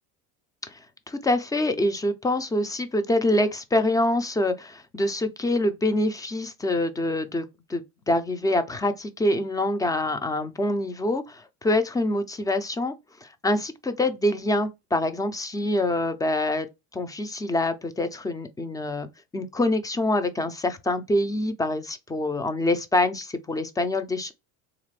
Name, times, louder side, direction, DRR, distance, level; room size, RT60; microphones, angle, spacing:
voice 1, 1.1-7.4 7.7-7.8 8.1-12.9 13.2-16.7 16.9-19.1 19.3-24.3, left 1 dB, 10° left, 0.4 m, -25 dB
3.5 x 2.5 x 3.1 m
supercardioid pair, 110°, 38 cm